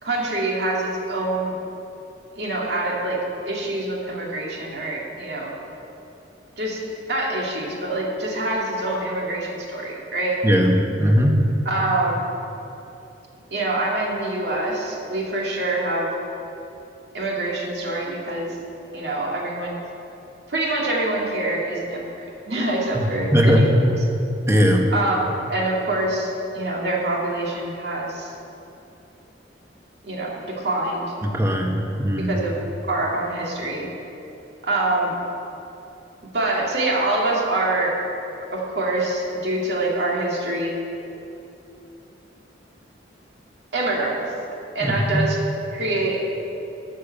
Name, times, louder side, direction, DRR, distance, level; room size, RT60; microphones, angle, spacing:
voice 1, 0.0-1.5 2.4-5.6 6.6-6.8 7.1-10.4 11.7-12.2 13.5-16.1 17.1-18.6 18.9-19.8 20.5-22.1 22.5-23.7 24.9-28.3 30.0-31.1 32.2-32.6 32.9-33.9 34.6-35.1 36.3-38.0 38.5-40.8 43.7-44.2 44.7-45.4 45.7-46.3, right 2 dB, 65° right, -3 dB, 2.2 m, -25 dB
voice 2, 10.4-11.3 23.3-23.9 24.5-24.8 31.2-32.3 44.8-45.2, equal, 15° right, 1 dB, 1.1 m, -18 dB
12.5 x 6.7 x 6.5 m, 2.9 s
head